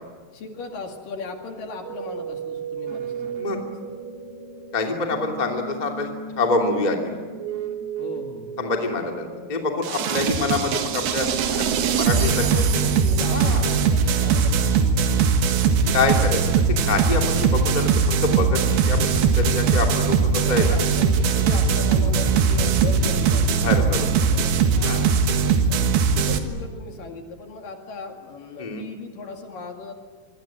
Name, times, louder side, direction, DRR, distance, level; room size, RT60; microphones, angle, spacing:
voice 1, 0.3-3.5 8.0-8.6 10.1-10.4 12.2-15.4 20.4-25.0 25.3-29.9, left 3 dB, 60° left, 3 dB, 3.5 m, -37 dB
sound 1, 1.8-13.8, right 5 dB, 50° right, 1.9 m, -36 dB
voice 2, 4.7-7.0 8.6-12.3 13.3-13.6 15.9-16.4 16.9-17.9 18.2-20.7 23.6-24.1 24.8-25.1 28.6-28.8, left 3 dB, 15° left, 2 dB, 2.1 m, -26 dB
sound 2, 9.8-26.4, right 5 dB, 70° right, 3.3 m, -20 dB
sound 3, 19.0-20.5 22.3-23.7, right 1 dB, 10° right, 3.0 m, -31 dB
26.0 x 22.5 x 9.0 m, 1.5 s
omnidirectional pair, 4.8 m